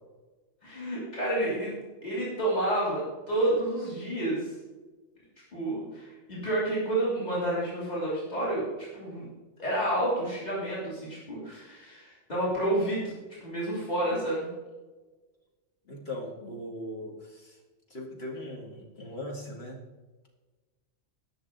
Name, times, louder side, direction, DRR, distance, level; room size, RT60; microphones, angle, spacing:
voice 1, 0.6-1.7 2.0-4.5 5.5-9.3 9.6-13.1 13.4-14.5, right 1 dB, 35° left, -7 dB, 3.5 m, -30 dB
voice 2, 15.9-17.6 17.9-19.8, left 1 dB, 60° left, -1 dB, 2.0 m, -39 dB
19.0 x 6.6 x 3.9 m, 1.3 s
omnidirectional pair, 1.2 m